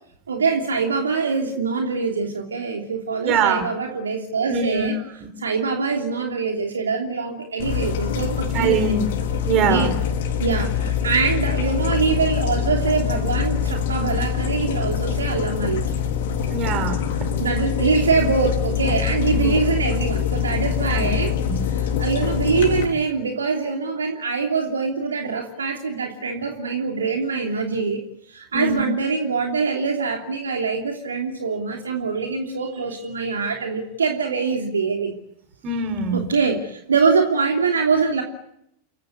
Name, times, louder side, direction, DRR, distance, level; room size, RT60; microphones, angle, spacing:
voice 1, 0.3-5.0 5.4-9.0 9.5-9.9 10.4-16.0 17.4-21.4 21.7-28.0 28.3-35.2 36.1-38.2, right 4 dB, 70° right, 2 dB, 3.0 m, -24 dB
voice 2, 3.3-3.6 4.5-4.9 8.5-9.1 9.5-9.9 16.5-17.1 19.4-19.5 20.9-21.1 21.5-21.6 28.5-28.8 35.6-36.3, right 5 dB, 35° right, 9 dB, 5.2 m, -22 dB
sound 1, 7.6-22.8, left 8 dB, 55° left, 4.0 m, -24 dB
29.0 x 17.0 x 9.3 m, 0.77 s
figure-of-eight pair, 90°, 0 cm